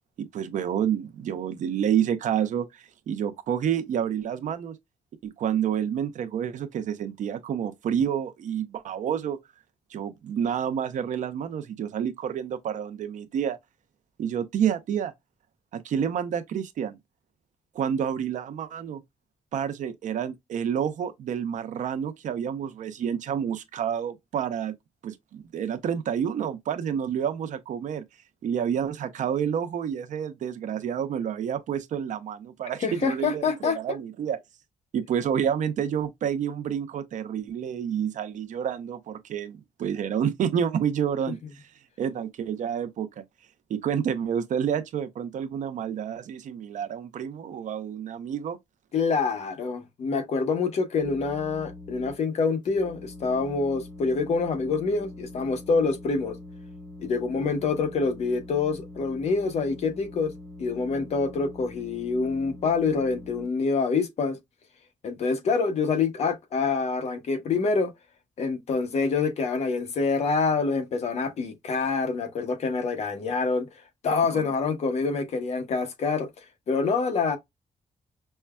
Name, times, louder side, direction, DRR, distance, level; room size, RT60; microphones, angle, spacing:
voice 1, 0.2-4.8 5.2-9.4 9.9-13.6 14.2-15.1 15.7-17.0 17.7-19.0 19.5-24.7 25.0-28.0 28.4-34.4 34.9-41.7 42.0-43.2 43.7-48.6 74.3-74.4, right 8 dB, 70° right, 0.6 m, -29 dB
voice 2, 32.8-34.0 48.9-56.4 57.0-60.3 60.6-64.4 65.0-67.9 68.4-73.7 74.0-77.4, left 4 dB, 55° left, 0.9 m, -26 dB
sound 1, 50.9-52.1 52.6-63.5, left 1 dB, 35° left, 1.1 m, -44 dB
5.4 x 2.2 x 2.2 m
wide cardioid pair, 170°, 13 cm